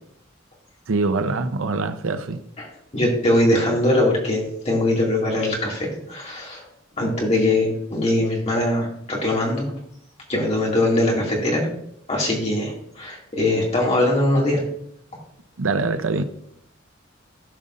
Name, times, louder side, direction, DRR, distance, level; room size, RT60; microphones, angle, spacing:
voice 1, 0.9-2.4 15.6-16.2, right 3 dB, 75° right, 0.6 m, -24 dB
voice 2, 2.9-6.6 7.0-9.7 10.3-11.7 12.1-14.6, left 1 dB, 30° left, 2.4 m, -21 dB
16.0 x 5.3 x 2.6 m
head